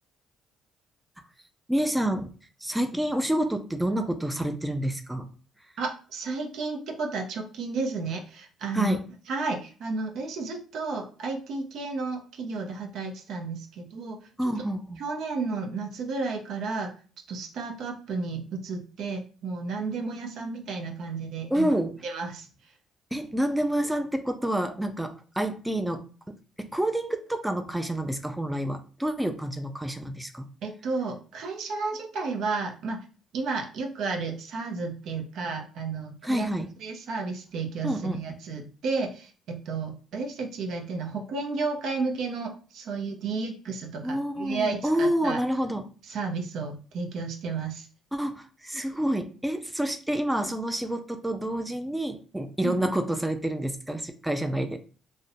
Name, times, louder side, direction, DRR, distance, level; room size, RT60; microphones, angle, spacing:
voice 1, 1.7-2.3 2.6-5.3 8.7-9.1 14.4-15.0 21.5-21.9 23.1-30.5 36.2-36.7 37.8-38.2 44.0-45.9 48.1-54.9, right 1 dB, 10° right, 7 dB, 0.4 m, -28 dB
voice 2, 5.8-9.0 9.3-14.2 15.0-16.9 17.3-21.7 22.0-22.5 30.6-33.0 33.3-36.5 36.8-45.4 46.1-47.9 52.6-52.8, right 4 dB, 70° right, 3 dB, 0.5 m, -32 dB
2.5 x 2.1 x 2.6 m, 0.37 s
supercardioid pair, 60°, 0 cm